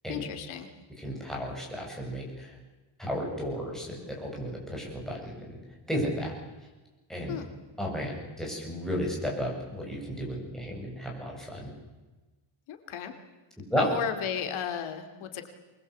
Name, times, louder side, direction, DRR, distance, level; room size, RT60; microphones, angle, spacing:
voice 1, 0.1-0.7 7.3-7.5 12.7-13.1 13.8-15.5, left 8 dB, 80° left, 7 dB, 2.8 m, -34 dB
voice 2, 1.0-2.6 3.0-5.5 5.9-6.3 7.1-7.3 7.8-11.7 13.7-13.9, equal, ahead, -2 dB, 7.6 m, -33 dB
25.0 x 21.0 x 8.5 m, 1.2 s
cardioid pair, 180°, 48 cm